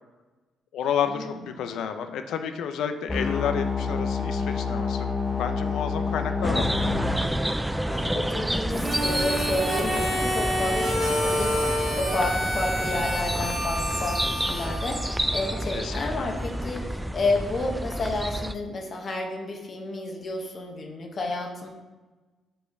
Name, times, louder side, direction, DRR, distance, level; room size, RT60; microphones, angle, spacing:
voice 1, 0.7-6.7 15.7-16.3, left 8 dB, 80° left, 8 dB, 0.6 m, -30 dB
sound 1, 3.1-7.1, left 5 dB, 15° left, 0.9 m, -28 dB
voice 2, 6.0-6.5 7.9-21.7, left 2 dB, 45° left, 1 dB, 1.0 m, -31 dB
sound 2, 6.4-18.5, right 1 dB, 5° right, 0.3 m, -29 dB
Harmonica, 8.7-15.6, equal, 25° right, 1.7 m, -28 dB
5.6 x 4.3 x 4.7 m, 1.2 s
cardioid pair, 90°, 0 cm